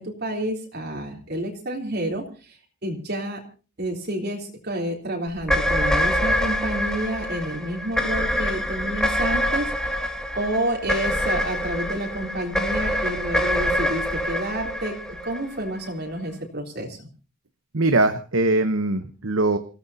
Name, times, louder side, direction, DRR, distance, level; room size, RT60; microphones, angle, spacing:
voice 1, 0.0-2.6 2.8-3.4 3.8-9.7 10.4-15.0 15.2-17.1, right 1 dB, 55° right, 0 dB, 3.5 m, -29 dB
sound 1, 5.4-15.9, equal, 5° left, 1.8 m, -25 dB
voice 2, 17.7-19.6, right 2 dB, 70° right, 8 dB, 1.0 m, -21 dB
28.0 x 16.5 x 2.8 m, 0.36 s
head